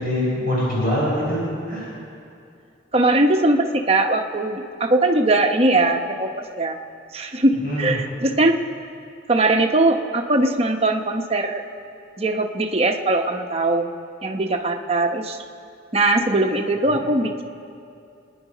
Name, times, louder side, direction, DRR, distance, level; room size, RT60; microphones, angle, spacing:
voice 1, 0.0-1.9 7.5-8.0 16.9-17.0, equal, 50° left, -7 dB, 5.1 m, -24 dB
voice 2, 2.9-6.3 6.6-6.8 7.1-8.6 9.3-11.6 12.2-13.9 14.2-15.4 15.9-17.4, right 2 dB, 35° right, 4 dB, 0.9 m, -20 dB
26.0 x 10.0 x 5.0 m, 2.5 s
head